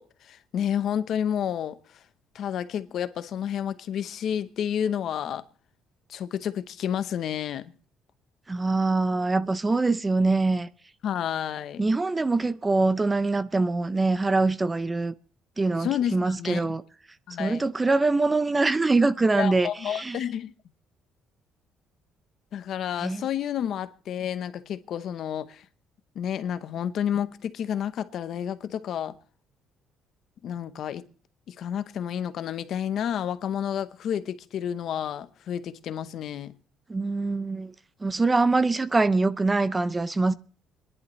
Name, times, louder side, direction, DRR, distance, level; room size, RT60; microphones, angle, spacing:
voice 1, 0.0-1.8 2.3-5.4 6.1-7.7 11.0-11.8 15.8-16.7 17.3-17.7 19.3-20.5 22.5-25.6 26.1-29.2 30.4-31.1 31.5-36.6, left 9 dB, 60° left, 0.9 m, -30 dB
voice 2, 8.5-10.7 11.8-15.1 15.6-16.8 17.4-20.2 23.0-23.2 36.9-37.7 38.0-40.3, right 3 dB, 15° right, 0.6 m, -24 dB
27.5 x 11.0 x 3.2 m
cardioid pair, 130°, 0 cm